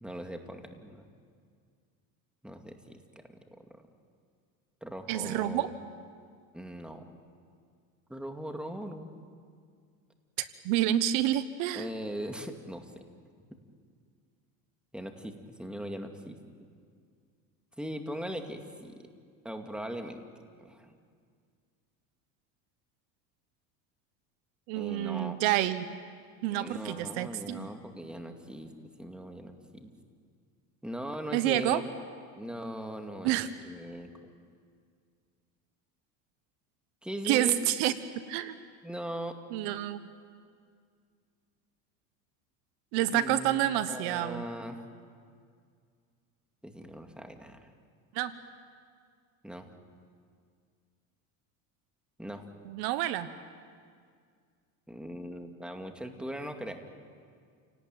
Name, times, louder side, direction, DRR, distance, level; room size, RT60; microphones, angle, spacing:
voice 1, 0.0-1.0 2.4-3.0 3.3-3.9 4.8-5.7 6.5-7.0 8.1-9.1 11.7-13.0 14.9-15.3 15.6-16.4 17.8-19.0 19.4-20.2 20.6-21.0 24.8-25.4 26.5-28.7 29.0-29.9 30.8-31.8 32.4-34.3 37.0-37.6 38.8-39.3 43.1-44.8 46.6-47.7 49.4-49.7 52.2-52.4 54.9-56.8, equal, ahead, 5 dB, 2.4 m, -40 dB
voice 2, 5.1-5.7 10.4-11.9 24.7-25.9 26.4-27.7 31.3-31.8 33.2-33.5 37.2-37.9 38.3-38.6 39.5-40.0 42.9-44.4 48.1-48.3 52.6-53.3, right 13 dB, 65° right, 13 dB, 1.2 m, -28 dB
29.0 x 18.5 x 9.2 m, 2.1 s
supercardioid pair, 105°, 43 cm